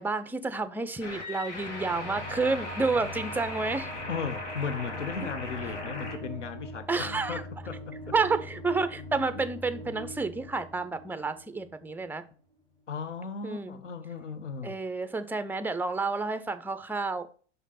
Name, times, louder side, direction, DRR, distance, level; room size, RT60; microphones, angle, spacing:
voice 1, 0.0-3.9 6.9-7.4 8.1-12.2 13.4-13.8 14.6-17.3, right 3 dB, 5° right, 0.5 m, -30 dB
sound 1, 1.0-6.2, left 3 dB, 70° left, 1.9 m, -39 dB
sound 2, 1.4-12.4, equal, 10° left, 1.8 m, -42 dB
voice 2, 4.1-8.1 12.9-14.8, left 6 dB, 90° left, 0.6 m, -36 dB
6.1 x 5.0 x 4.1 m
figure-of-eight pair, 80°, 36 cm